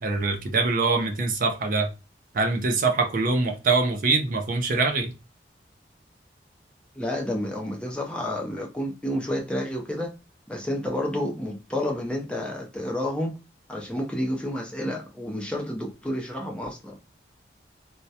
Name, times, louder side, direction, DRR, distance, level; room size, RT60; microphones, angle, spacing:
voice 1, 0.0-1.9 2.3-5.1, right 3 dB, 50° right, 0.5 m, -24 dB
voice 2, 7.0-10.1 10.5-13.3 13.7-17.0, left 1 dB, 5° left, 0.4 m, -30 dB
2.2 x 2.1 x 2.7 m
head